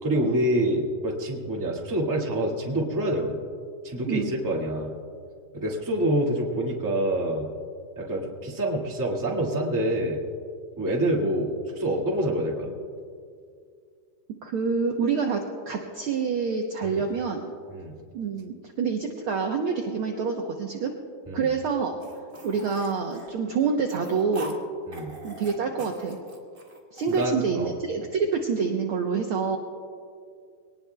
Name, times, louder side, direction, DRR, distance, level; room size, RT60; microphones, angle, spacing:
voice 1, 0.0-3.4 3.8-4.9 5.5-7.5 7.9-10.2 10.8-12.7 16.8-17.0 17.7-17.9 21.3-21.5 24.9-25.1 27.1-27.7, right 1 dB, 10° right, -3 dB, 1.2 m, -26 dB
voice 2, 14.4-17.4 18.1-20.9 21.3-22.0 22.4-24.5 25.2-26.2 26.9-29.6, right 5 dB, 80° right, 2 dB, 1.2 m, -27 dB
sound 1, 22.0-24.6 24.9-27.3, right 1 dB, 40° right, 0.8 m, -43 dB
23.0 x 19.0 x 2.3 m, 2.2 s
omnidirectional pair, 3.6 m